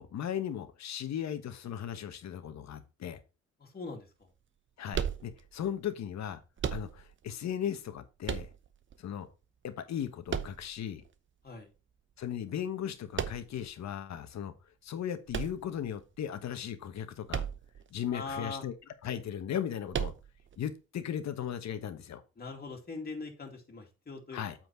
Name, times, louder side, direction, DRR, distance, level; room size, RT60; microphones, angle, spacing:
voice 1, 0.0-3.2 4.8-6.4 6.7-8.5 9.0-9.3 9.6-11.0 12.2-14.5 14.8-17.4 17.9-18.7 19.0-20.1 20.6-22.2 24.3-24.5, left 9 dB, 65° left, 9 dB, 1.3 m, -37 dB
voice 2, 3.6-4.3 11.4-11.7 18.1-18.6 22.4-24.4, left 3 dB, 30° left, 1 dB, 2.4 m, -41 dB
sound 1, 4.9-5.7 6.6-7.3 8.2-9.0 10.3-11.1 13.1-13.7 15.3-16.2 17.3-17.9 18.1-18.2 19.9-20.6, right 8 dB, 40° right, 0.8 m, -35 dB
8.1 x 4.5 x 4.5 m, 0.30 s
cardioid pair, 90°, 30 cm